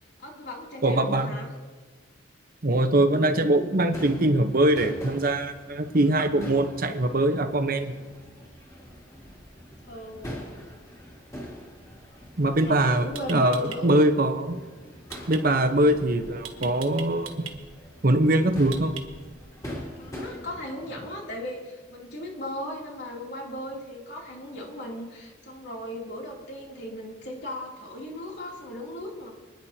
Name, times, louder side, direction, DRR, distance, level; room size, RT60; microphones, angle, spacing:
voice 1, 0.2-1.5 9.9-10.5 12.5-14.0 20.0-29.3, left 1 dB, 60° left, -2 dB, 2.9 m, -37 dB
voice 2, 0.8-1.3 2.6-7.9 12.4-14.6 15.3-17.5 18.0-18.9, right 1 dB, 45° right, 7 dB, 1.0 m, -22 dB
Crowd / Fireworks, 3.9-21.2, equal, 15° left, 2.8 m, -43 dB
sound 1, 13.2-13.8 15.1-15.4 16.4-17.6 18.7-19.3, right 8 dB, 80° right, 1.4 m, -38 dB
25.5 x 10.5 x 2.8 m, 1.3 s
head